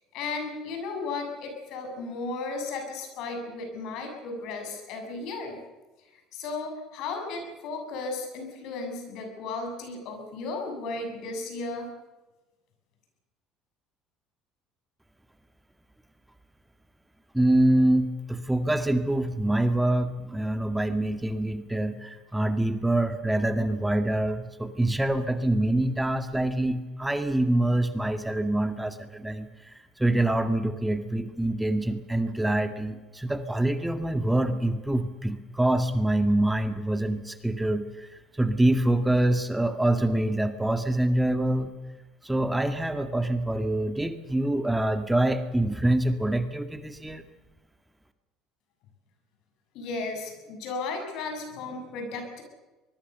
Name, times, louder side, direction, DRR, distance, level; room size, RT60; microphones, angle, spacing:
voice 1, 0.1-5.6 6.3-11.9 49.7-52.4, left 3 dB, 65° left, 4 dB, 7.4 m, -35 dB
voice 2, 17.3-41.7 42.2-47.2, right 1 dB, 10° right, 8 dB, 1.9 m, -25 dB
24.0 x 21.5 x 7.0 m, 1.1 s
hypercardioid pair, 70°, 0 cm